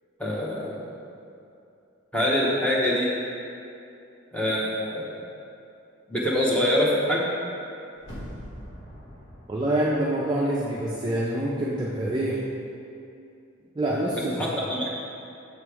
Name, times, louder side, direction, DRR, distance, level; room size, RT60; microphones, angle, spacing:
voice 1, 0.2-0.9 2.1-3.1 4.3-5.1 6.1-7.2 14.4-15.0, left 1 dB, 5° left, -5 dB, 0.8 m, -24 dB
sound 1, 8.0-10.9 11.3-11.4, equal, 70° left, 1.4 m, -43 dB
voice 2, 9.5-12.4 13.8-14.3, right 1 dB, 20° right, -6 dB, 0.4 m, -26 dB
6.8 x 3.2 x 4.7 m, 2.6 s
head